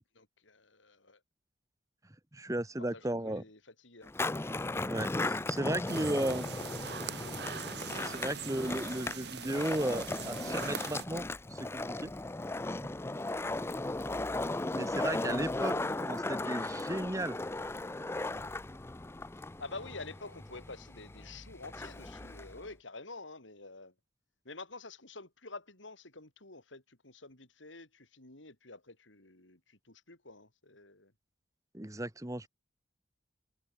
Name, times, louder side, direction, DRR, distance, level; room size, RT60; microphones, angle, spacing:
voice 1, 0.1-1.2 2.8-4.1 6.9-7.3 15.2-15.9 19.6-23.9 24.4-31.1, left 3 dB, 85° left, 5.2 m, -49 dB
voice 2, 2.3-3.4 4.8-6.5 8.0-11.2 11.5-12.1 12.8-12.9 14.7-17.4 31.7-32.5, right 1 dB, 15° right, 1.2 m, -35 dB
Skateboard, 4.0-22.7, left 2 dB, 15° left, 0.4 m, -37 dB
sound 1, 5.9-11.0, right 6 dB, 60° right, 2.2 m, -42 dB
head